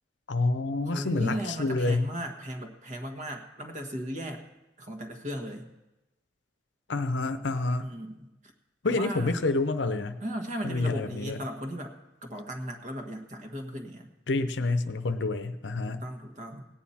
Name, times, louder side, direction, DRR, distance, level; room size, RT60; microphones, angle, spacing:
voice 1, 0.3-2.1 6.9-7.9 8.8-10.2 10.6-11.4 14.3-16.0, left 3 dB, 80° left, 10 dB, 0.7 m, -28 dB
voice 2, 0.9-4.4 4.8-5.7 7.8-8.3 8.8-9.4 10.2-12.0 12.2-14.1 16.0-16.7, equal, 40° right, 5 dB, 1.4 m, -36 dB
17.5 x 9.5 x 4.3 m, 1.0 s
head